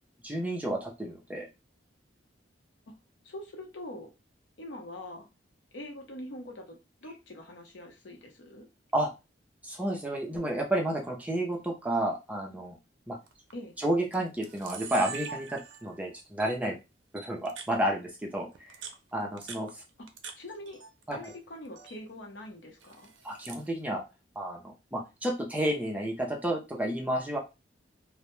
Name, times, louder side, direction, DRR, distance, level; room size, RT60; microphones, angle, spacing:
voice 1, 0.2-1.5 8.9-9.1 9.6-12.8 13.1-13.2 13.8-16.8 17.1-18.5 19.1-19.8 21.1-21.2 23.2-24.0 24.4-27.4, right 1 dB, 10° right, 0.4 m, -31 dB
voice 2, 3.2-4.1 4.6-5.3 5.7-8.7 13.5-13.8 20.4-20.8 21.1-23.1, left 1 dB, 75° left, 0.6 m, -43 dB
Camera, 13.3-13.5 14.1-14.2 14.4-16.0 16.4-16.5 17.2-17.7 18.5-20.4 20.7-21.4 21.6-22.0 22.8-23.7, right 6 dB, 85° right, 0.4 m, -43 dB
2.1 x 2.0 x 2.9 m
head